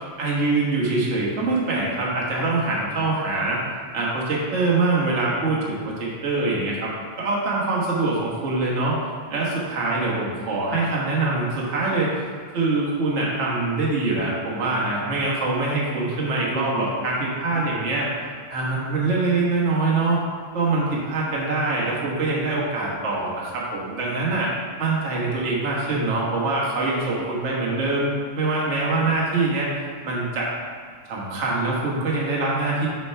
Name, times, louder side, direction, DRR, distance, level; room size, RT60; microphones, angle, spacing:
voice 1, 0.2-3.6 3.9-6.9 7.2-9.0 9.3-12.1 12.5-18.1 18.5-20.2 20.5-24.5 24.8-29.7 30.0-30.5 31.1-32.9, right 3 dB, 60° right, -5 dB, 0.7 m, -24 dB
7.9 x 3.4 x 5.6 m, 2.1 s
omnidirectional pair, 3.3 m